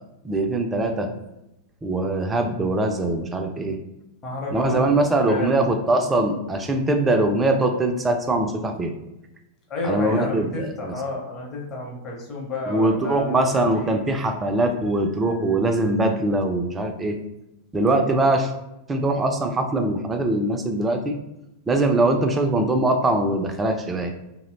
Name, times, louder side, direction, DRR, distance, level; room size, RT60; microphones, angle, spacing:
voice 1, 0.2-1.1 1.8-3.8 4.5-8.9 9.8-10.9 12.7-17.2 17.7-18.5 18.9-21.2 21.7-24.1, right 2 dB, 15° right, 5 dB, 0.3 m, -22 dB
voice 2, 4.2-5.8 9.7-13.5 13.7-14.1, left 3 dB, 30° left, -2 dB, 0.7 m, -31 dB
2.6 x 2.0 x 2.5 m, 0.91 s
figure-of-eight pair, 90°, 0 cm